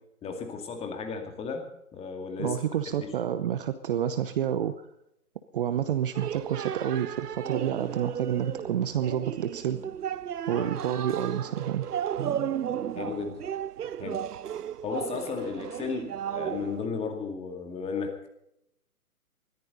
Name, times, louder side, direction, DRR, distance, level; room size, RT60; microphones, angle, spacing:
voice 1, 0.2-2.6 3.0-3.1 10.5-10.7 12.9-13.4 14.0-14.3 14.8-18.3, left 5 dB, 15° left, 5 dB, 2.3 m, -34 dB
voice 2, 2.4-4.7 5.5-9.8 10.5-11.9, right 9 dB, 35° right, 12 dB, 0.9 m, -29 dB
sound 1, 6.1-16.9, right 9 dB, 85° right, 0.6 m, -34 dB
20.5 x 14.0 x 4.0 m, 0.80 s
figure-of-eight pair, 130°, 45 cm